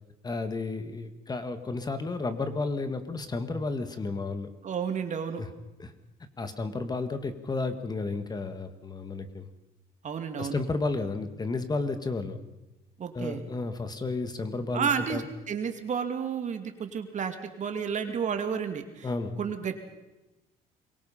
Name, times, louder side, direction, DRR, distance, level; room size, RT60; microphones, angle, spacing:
voice 1, 0.2-4.5 5.4-5.5 5.8-5.9 6.4-9.5 10.4-12.4 13.1-15.3 19.0-19.3, left 3 dB, 25° left, 9 dB, 1.8 m, -32 dB
voice 2, 4.6-5.4 10.0-10.6 13.0-13.4 14.7-15.2 15.5-19.1 19.4-19.9, right 7 dB, 45° right, 6 dB, 2.6 m, -31 dB
23.5 x 23.0 x 5.7 m, 1.0 s
cardioid pair, 110°, 17 cm